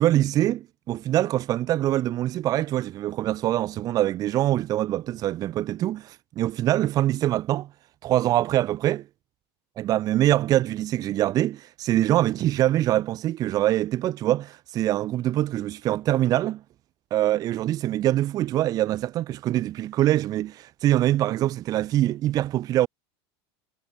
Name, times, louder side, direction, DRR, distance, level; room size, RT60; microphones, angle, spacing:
voice 1, 0.0-7.7 8.0-9.0 9.8-16.6 17.1-22.9, right 13 dB, 25° right, 0.6 m, -24 dB
supercardioid pair, 165°, 14 cm